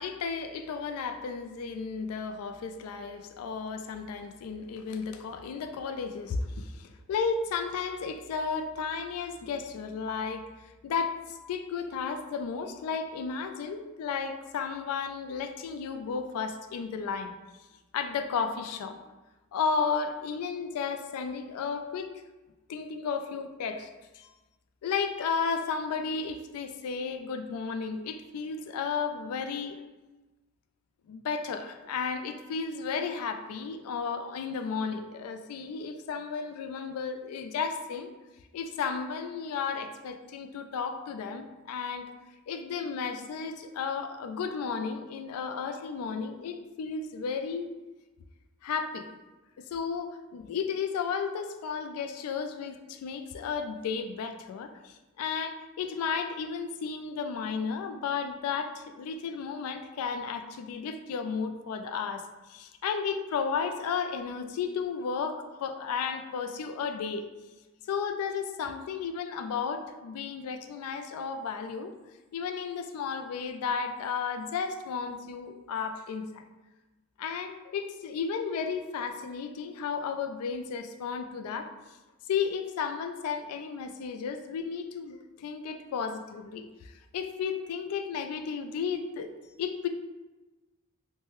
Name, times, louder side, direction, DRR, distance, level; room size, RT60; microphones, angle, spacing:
voice 1, 0.0-10.5 10.8-17.3 17.9-19.0 19.5-22.1 22.7-23.9 24.1-24.3 24.8-29.8 31.1-38.1 38.5-42.1 42.5-47.7 48.6-49.1 49.7-62.2 62.5-67.2 67.9-71.9 72.3-76.4 77.2-81.7 82.3-89.9, left 5 dB, 85° left, 11 dB, 0.3 m, -33 dB
3.1 x 2.1 x 3.0 m, 1.1 s
head